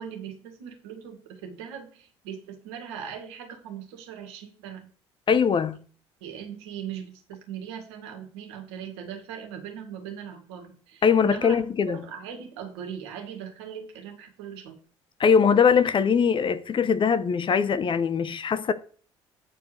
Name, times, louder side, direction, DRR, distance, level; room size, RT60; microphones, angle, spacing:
voice 1, 0.0-4.9 6.2-11.6 11.9-14.8, right 8 dB, 65° right, 2.1 m, -39 dB
voice 2, 5.3-5.8 11.0-12.0 15.2-18.7, left 6 dB, 35° left, 0.8 m, -21 dB
8.9 x 4.6 x 6.6 m
figure-of-eight pair, 55°, 15 cm